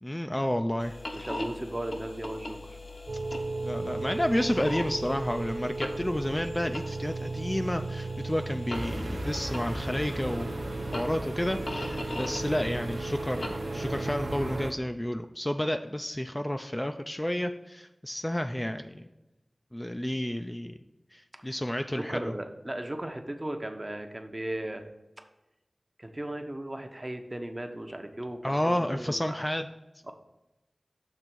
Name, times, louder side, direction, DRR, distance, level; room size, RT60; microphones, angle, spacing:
voice 1, 0.0-1.0 3.6-10.6 10.9-19.1 19.7-20.7 21.1-22.3 28.4-29.7, left 1 dB, 15° left, 6 dB, 0.3 m, -31 dB
sound 1, 0.8-14.1, left 1 dB, 80° left, 1.0 m, -41 dB
voice 2, 1.1-2.6 21.4-21.6 21.9-24.8 26.0-29.4, right 1 dB, 30° right, 5 dB, 0.8 m, -36 dB
sound 2, 3.1-14.7, right 3 dB, 60° right, 0.4 m, -36 dB
sound 3, 8.7-14.7, right 1 dB, 80° right, 0.8 m, -37 dB
6.7 x 3.6 x 6.0 m, 0.98 s
wide cardioid pair, 70°, 0 cm